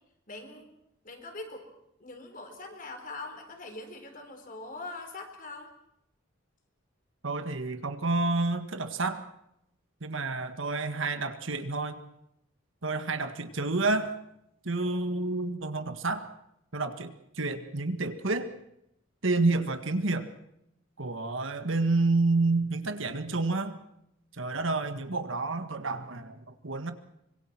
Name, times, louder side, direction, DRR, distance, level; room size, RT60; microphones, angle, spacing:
voice 1, 0.3-0.7 1.0-1.7 2.0-5.7, left 2 dB, 40° left, 5 dB, 4.1 m, -42 dB
voice 2, 7.2-9.2 10.0-12.0 12.8-14.1 14.6-16.3 16.7-18.5 19.2-20.3 21.0-23.8 24.3-26.9, right 3 dB, 70° right, 9 dB, 1.7 m, -29 dB
25.0 x 22.5 x 6.1 m, 0.80 s
head